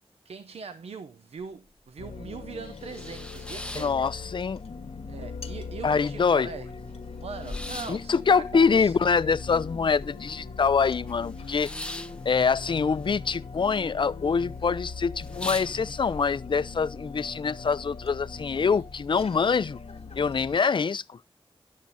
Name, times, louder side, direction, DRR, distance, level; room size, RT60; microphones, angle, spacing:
voice 1, 0.2-4.0 5.1-6.7 7.2-8.9 18.7-18.8, right 5 dB, 90° right, 0.7 m, -41 dB
sound 1, 1.4-1.5 1.9-2.0 2.4-4.7 5.0-5.7 6.1-6.2 6.3-10.5 10.8-13.6 13.8-14.4 14.7-14.8 15.1-16.2, left 1 dB, 10° left, 0.7 m, -41 dB
sound 2, 2.0-20.6, left 4 dB, 75° left, 1.1 m, -40 dB
voice 2, 3.7-4.6 5.8-6.5 7.9-11.7 12.2-19.8 20.2-21.2, left 5 dB, 50° left, 0.5 m, -25 dB
11.0 x 7.3 x 4.0 m
wide cardioid pair, 65°, 10 cm